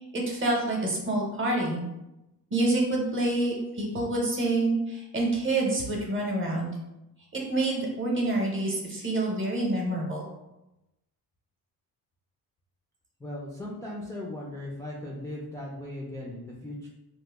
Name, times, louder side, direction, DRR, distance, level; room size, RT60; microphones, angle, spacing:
voice 1, 0.1-1.8 2.5-6.7 7.3-10.2, right 2 dB, 30° right, -1 dB, 0.8 m, -27 dB
voice 2, 13.2-16.9, left 1 dB, 10° left, -4 dB, 0.3 m, -38 dB
3.0 x 2.1 x 3.3 m, 0.92 s
cardioid pair, 135°, 39 cm